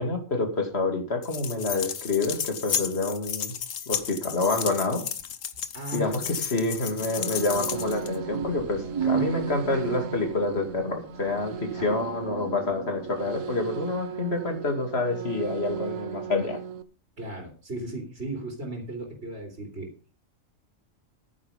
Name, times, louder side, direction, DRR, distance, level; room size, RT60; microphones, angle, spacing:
voice 1, 0.0-3.5 3.9-5.0 5.9-16.6, left 3 dB, 50° left, 4 dB, 2.8 m, -28 dB
sound 1, 1.2-8.2, left 8 dB, 75° left, 1.4 m, -33 dB
voice 2, 5.7-6.3 9.0-9.3 11.8-11.9 17.2-19.9, right 1 dB, 50° right, 1 dB, 3.4 m, -36 dB
sound 2, 6.9-16.8, right 7 dB, 75° right, 1.3 m, -37 dB
sound 3, 7.5-13.2, right 8 dB, 30° right, 0.8 m, -35 dB
11.0 x 9.5 x 5.2 m, 0.37 s
omnidirectional pair, 1.4 m